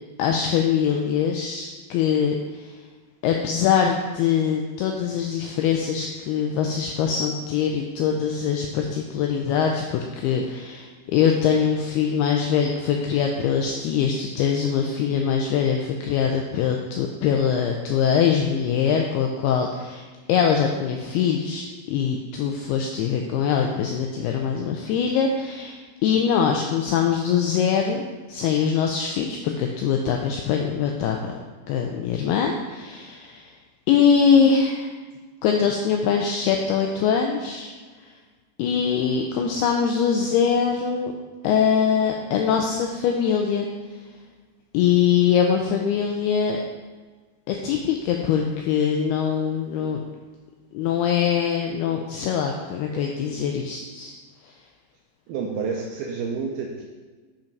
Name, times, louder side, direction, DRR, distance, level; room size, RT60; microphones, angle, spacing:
voice 1, 0.2-2.7 3.2-31.3 31.7-33.5 33.9-34.9 35.4-37.7 38.6-41.1 41.4-43.7 44.7-46.6 47.5-50.0 50.7-54.1, left 7 dB, 85° left, 2 dB, 2.3 m, -23 dB
voice 2, 55.3-56.8, right 5 dB, 80° right, 0 dB, 2.3 m, -29 dB
7.1 x 5.4 x 5.2 m, 1.4 s
omnidirectional pair, 5.1 m